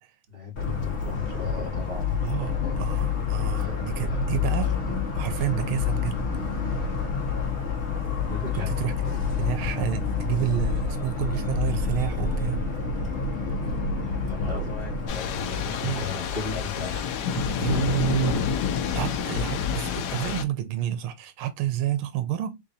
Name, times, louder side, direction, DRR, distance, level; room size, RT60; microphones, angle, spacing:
voice 1, 0.3-2.2 3.5-4.5 8.3-8.7 10.7-10.8 14.1-14.8 15.1-17.1, left 4 dB, 35° right, 2.6 m, -36 dB
Motor vehicle (road) / Siren, 0.6-15.1, left 5 dB, 45° left, 1.0 m, -28 dB
voice 2, 2.2-6.2 8.5-12.6 15.8-16.1 17.3-22.6, right 12 dB, 90° right, 1.5 m, -30 dB
Thunder / Rain, 15.1-20.4, left 7 dB, 70° left, 1.0 m, -28 dB
3.8 x 3.7 x 2.7 m
omnidirectional pair, 2.2 m